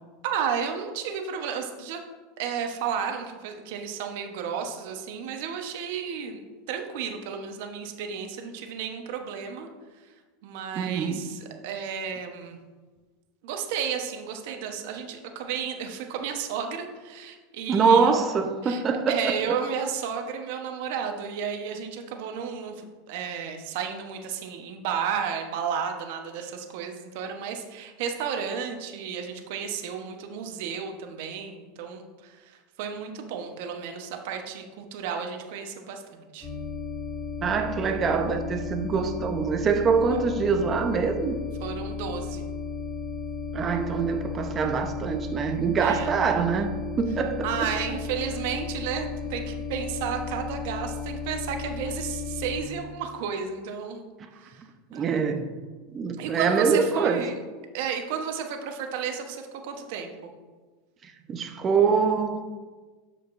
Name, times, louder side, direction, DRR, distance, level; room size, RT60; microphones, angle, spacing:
voice 1, 0.2-2.0 2.4-9.7 10.4-12.6 13.4-18.3 18.6-18.8 19.1-36.5 41.6-42.4 45.8-46.1 47.4-54.0 54.4-54.6 54.9-55.2 56.2-57.4 57.7-60.1, right 7 dB, 70° right, 1.1 m, -32 dB
voice 2, 10.7-11.2 17.7-19.4 37.4-41.4 43.5-47.5 54.9-55.5 55.9-57.2 61.0-62.4, right 5 dB, 30° right, 0.8 m, -24 dB
sound 1, 36.4-52.6, left 5 dB, 25° left, 2.2 m, -34 dB
12.5 x 5.1 x 2.6 m
supercardioid pair, 115°, 0 cm